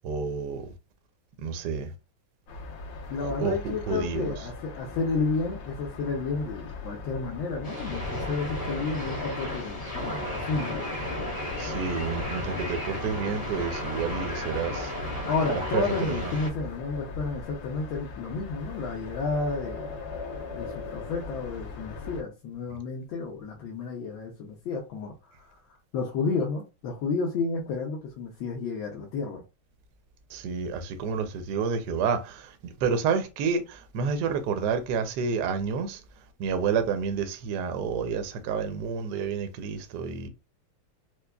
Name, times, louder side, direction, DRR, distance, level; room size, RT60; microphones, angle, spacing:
voice 1, 0.0-0.6 1.4-1.9 3.4-4.3 11.6-12.4 12.7-14.9 15.5-15.8 30.3-32.4 32.8-33.6 33.9-36.0 36.4-40.3, right 6 dB, 70° right, 1.0 m, -29 dB
sound 1, 2.5-22.2, left 4 dB, 60° left, 1.6 m, -40 dB
voice 2, 3.1-10.9 15.2-19.9 20.5-25.6 25.9-29.4, left 4 dB, 75° left, 1.5 m, -31 dB
sound 2, 7.6-16.5, left 1 dB, 25° left, 0.9 m, -34 dB
4.6 x 2.3 x 2.2 m
omnidirectional pair, 2.3 m